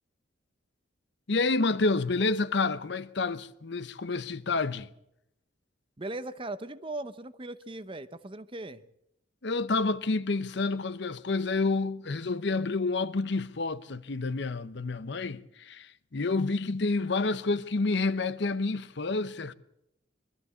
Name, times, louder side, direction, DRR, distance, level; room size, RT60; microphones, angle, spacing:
voice 1, 1.3-4.9 9.4-19.5, left 3 dB, 60° left, 0.8 m, -29 dB
voice 2, 6.0-8.8, right 2 dB, 25° right, 0.7 m, -38 dB
23.0 x 13.5 x 8.3 m
head